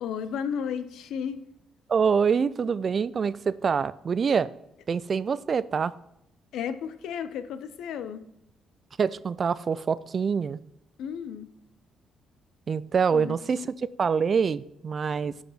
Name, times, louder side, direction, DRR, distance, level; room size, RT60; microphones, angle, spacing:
voice 1, 0.0-1.4 6.5-8.2 11.0-11.5 13.1-13.4, left 7 dB, 80° left, 12 dB, 0.7 m, -33 dB
voice 2, 1.9-4.5 4.9-5.9 9.0-10.6 12.7-13.7 14.0-15.4, right 6 dB, 45° right, 18 dB, 0.4 m, -25 dB
10.5 x 4.9 x 5.7 m, 0.82 s
cardioid pair, 90°, 0 cm